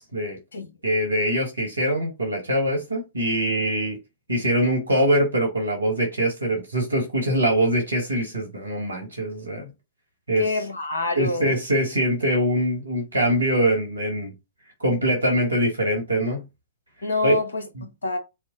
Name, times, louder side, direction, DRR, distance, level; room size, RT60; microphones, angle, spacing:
voice 1, 0.0-0.4 0.8-4.0 4.3-9.7 10.3-10.5 11.1-14.3 14.8-16.4 17.2-17.3, right 1 dB, 85° right, 1.6 m, -23 dB
voice 2, 10.4-11.6 17.0-18.2, left 3 dB, 70° left, 1.1 m, -27 dB
5.1 x 2.1 x 4.1 m
figure-of-eight pair, 105°, 0 cm